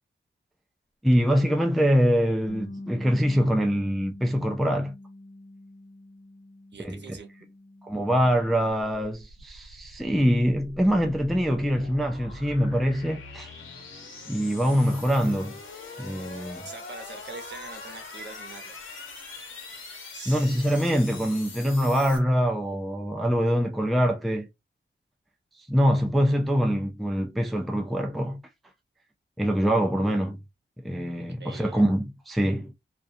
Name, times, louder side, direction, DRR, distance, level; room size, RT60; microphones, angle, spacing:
voice 1, 1.0-4.9 6.8-7.0 7.8-13.5 14.3-15.6 16.0-16.7 20.3-24.5 25.7-28.4 29.4-30.4 30.8-32.7, equal, ahead, 0.3 m, -24 dB
Bass guitar, 2.5-8.7, left 1 dB, 50° left, 0.7 m, -44 dB
voice 2, 6.7-7.3 16.6-18.7 20.1-20.5 31.2-31.8, right 4 dB, 65° right, 0.8 m, -43 dB
sound 1, 9.3-22.2, left 3 dB, 85° left, 1.0 m, -42 dB
2.4 x 2.2 x 2.5 m
wide cardioid pair, 110°, 20 cm